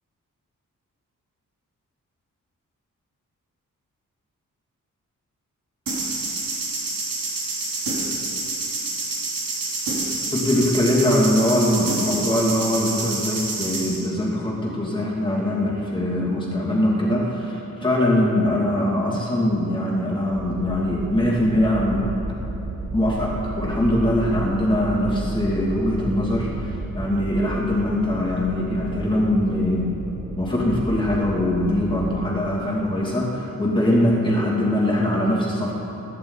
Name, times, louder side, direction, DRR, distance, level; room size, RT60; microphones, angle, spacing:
sound 1, 5.9-14.0, right 3 dB, 80° right, 3.5 m, -28 dB
voice 1, 10.3-22.1 22.9-29.9 30.4-35.7, left 1 dB, 15° left, -5 dB, 2.4 m, -22 dB
sound 2, 20.3-32.1, right 2 dB, 45° right, 1.4 m, -33 dB
22.0 x 11.0 x 4.0 m, 3.0 s
wide cardioid pair, 130°, 33 cm